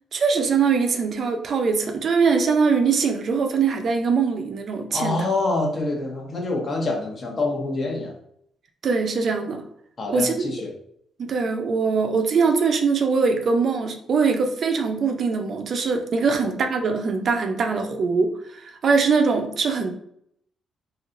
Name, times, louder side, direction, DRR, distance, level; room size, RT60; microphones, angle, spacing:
voice 1, 0.1-5.3 8.8-9.6 10.1-10.5 11.2-19.9, right 5 dB, 55° right, 5 dB, 0.4 m, -22 dB
voice 2, 4.9-8.1 10.0-10.7, left 2 dB, 40° left, 1 dB, 0.8 m, -26 dB
3.0 x 2.7 x 2.5 m, 0.70 s
cardioid pair, 90°, 0 cm